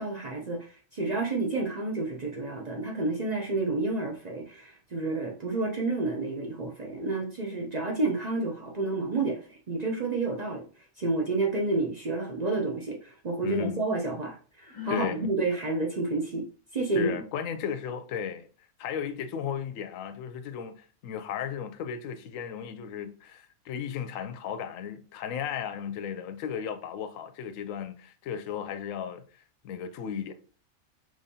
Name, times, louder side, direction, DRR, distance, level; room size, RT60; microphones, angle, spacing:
voice 1, 0.0-16.4 16.7-17.2, right 3 dB, 50° right, 0.5 m, -30 dB
voice 2, 13.4-13.8 14.9-15.3 16.9-18.5 18.8-29.2 29.6-30.3, left 8 dB, 70° left, 0.9 m, -35 dB
Sigh, 14.6-15.2, left 6 dB, 25° left, 1.0 m, -38 dB
5.1 x 3.3 x 2.7 m
omnidirectional pair, 1.5 m